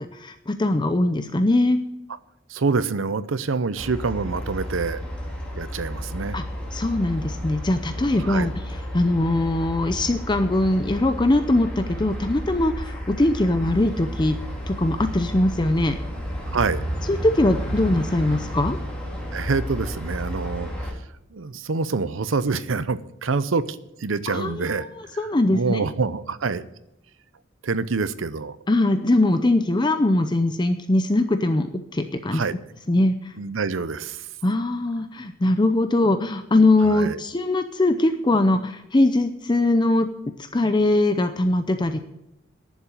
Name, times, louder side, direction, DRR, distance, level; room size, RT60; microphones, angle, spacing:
voice 1, 0.2-1.8 6.3-6.4 6.7-8.5 8.9-14.4 14.7-16.0 17.1-18.8 24.3-25.8 28.7-32.4 32.9-33.3 34.4-40.1 40.5-42.0, left 2 dB, 25° left, 8 dB, 0.6 m, -21 dB
voice 2, 2.5-5.0 5.6-6.4 8.2-8.5 16.5-16.8 19.3-20.7 21.3-24.8 25.5-26.6 27.6-28.6 32.3-32.5 33.4-34.2 36.8-37.2, right 4 dB, 80° right, 15 dB, 0.7 m, -26 dB
sound 1, 3.8-20.9, equal, 5° left, 2.7 m, -32 dB
11.0 x 7.2 x 9.0 m, 0.84 s
head